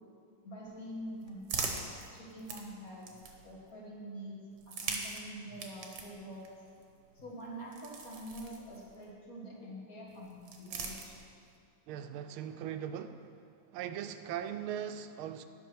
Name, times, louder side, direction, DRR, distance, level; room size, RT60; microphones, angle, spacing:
voice 1, 0.4-1.8 2.1-3.1 3.4-6.5 7.1-11.2, right 1 dB, 45° left, -4 dB, 2.1 m, -46 dB
sound 1, 0.7-3.7 4.5-9.1 10.1-11.6, right 4 dB, 55° right, 1.4 m, -43 dB
voice 2, 11.9-13.4 13.7-15.5, right 9 dB, 85° right, 9 dB, 1.4 m, -39 dB
11.0 x 6.2 x 6.1 m, 2.3 s
omnidirectional pair, 2.3 m